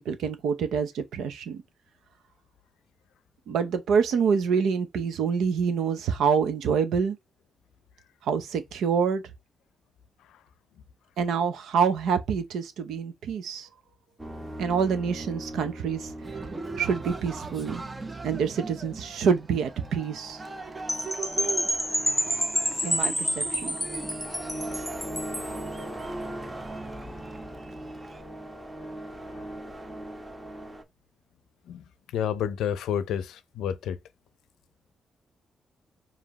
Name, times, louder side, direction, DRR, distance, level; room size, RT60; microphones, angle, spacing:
voice 1, 0.0-1.6 3.5-7.2 8.2-9.2 11.2-13.7 14.6-16.1 16.8-17.8 18.2-20.4 22.8-23.8, right 6 dB, 85° right, 0.8 m, -26 dB
sound 1, 14.2-30.8, right 1 dB, 15° right, 1.2 m, -40 dB
Cheering, 16.2-28.2, right 4 dB, 30° right, 0.8 m, -41 dB
Percussion / Wind chime, 20.9-25.6, equal, 5° left, 1.0 m, -29 dB
voice 2, 32.1-34.0, left 9 dB, 85° left, 0.5 m, -30 dB
5.0 x 2.7 x 2.9 m
supercardioid pair, 60°, 0 cm